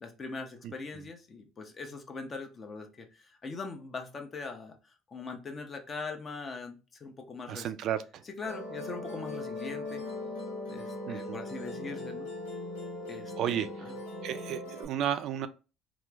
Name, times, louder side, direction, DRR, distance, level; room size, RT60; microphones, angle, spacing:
voice 1, 0.0-7.7 8.2-10.0 10.7-12.3 13.1-13.9, left 4 dB, 35° left, 0.8 m, -41 dB
voice 2, 0.6-1.1 7.5-8.2 11.1-11.4 13.4-13.9 14.2-15.5, right 10 dB, 65° right, 0.3 m, -33 dB
Musical instrument, 8.5-14.9, left 2 dB, 85° left, 0.9 m, -39 dB
3.1 x 2.0 x 3.4 m
supercardioid pair, 80°, 0 cm